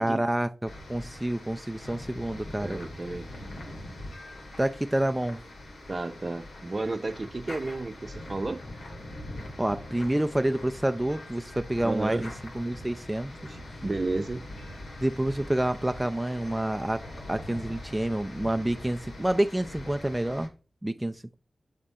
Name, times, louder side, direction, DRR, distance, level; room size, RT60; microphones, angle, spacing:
voice 1, 0.0-2.8 4.6-5.4 9.6-13.6 15.0-17.0 17.3-20.5 20.8-21.3, right 1 dB, 15° right, 0.4 m, -28 dB
sound 1, 0.6-20.5, left 1 dB, 85° left, 1.5 m, -43 dB
voice 2, 2.6-3.3 5.9-8.6 11.8-12.3 13.8-14.4, right 2 dB, 50° right, 0.7 m, -32 dB
6.5 x 4.0 x 3.6 m
cardioid pair, 40°, 0 cm